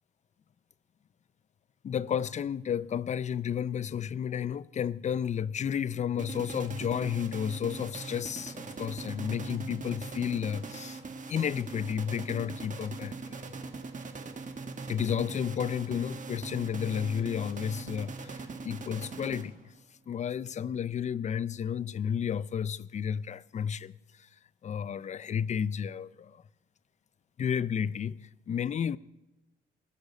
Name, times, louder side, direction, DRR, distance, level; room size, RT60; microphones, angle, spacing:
voice 1, 1.8-11.0 11.3-13.4 14.9-19.7 20.1-24.3 24.6-26.4 27.4-29.0, left 8 dB, 35° left, 0.4 m, -32 dB
sound 1, 6.2-19.8, right 3 dB, 40° right, 1.6 m, -41 dB
19.5 x 6.5 x 8.4 m
cardioid pair, 90°, 20 cm